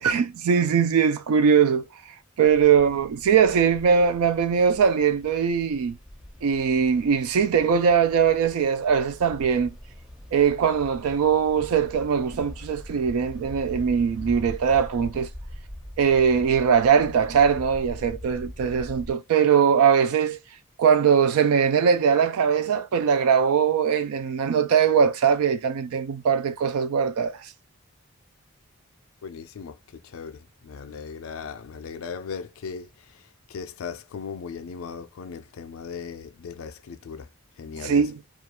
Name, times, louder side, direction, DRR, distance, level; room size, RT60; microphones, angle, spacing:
voice 1, 0.0-1.8 2.4-6.0 6.4-9.7 10.3-15.3 16.0-20.4 20.8-27.5 37.8-38.2, right 7 dB, 85° right, 0.3 m, -21 dB
sound 1, 2.4-19.1, left 1 dB, ahead, 0.5 m, -42 dB
voice 2, 29.2-37.3 37.6-38.1, left 6 dB, 75° left, 0.3 m, -38 dB
2.3 x 2.3 x 2.8 m
head